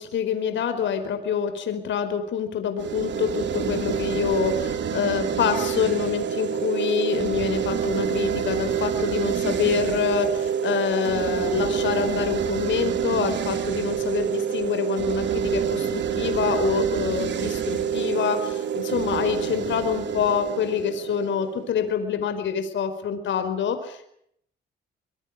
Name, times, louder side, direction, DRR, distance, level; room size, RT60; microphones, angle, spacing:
voice 1, 0.0-24.1, left 7 dB, 70° left, 8 dB, 4.8 m, -26 dB
sound 1, 2.8-21.9, right 8 dB, 65° right, 3.2 m, -27 dB
25.0 x 22.0 x 7.5 m, 0.71 s
cardioid pair, 90°, 20 cm